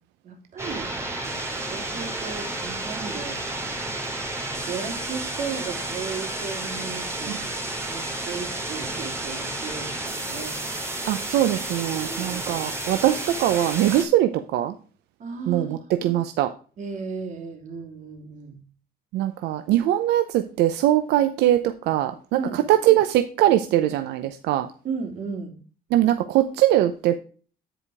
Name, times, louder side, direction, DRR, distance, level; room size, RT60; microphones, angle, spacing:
voice 1, 0.2-0.9 1.1-3.9 4.5-10.6 11.8-12.6 15.2-15.7 16.8-18.6 21.1-21.2 22.3-22.6 24.8-25.5, right 5 dB, 45° right, 2 dB, 3.1 m, -35 dB
sound 1, 0.6-14.0, right 2 dB, 15° right, 2.8 m, -31 dB
voice 2, 11.1-14.7 15.5-16.5 19.1-24.7 25.9-27.1, right 13 dB, 85° right, 8 dB, 0.7 m, -21 dB
9.8 x 5.1 x 4.8 m, 0.39 s
cardioid pair, 110°, 17 cm